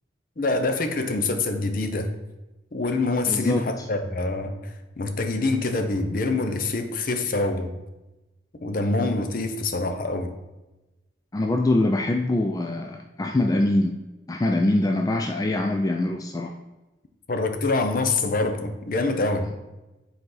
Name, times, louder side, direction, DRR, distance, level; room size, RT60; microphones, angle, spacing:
voice 1, 0.4-2.1 2.7-7.7 8.5-10.3 17.3-19.5, left 3 dB, 50° left, 7 dB, 0.7 m, -25 dB
voice 2, 3.3-3.8 11.3-13.9 14.3-16.5, left 1 dB, 20° left, 3 dB, 0.3 m, -23 dB
8.0 x 4.2 x 3.9 m, 1.0 s
head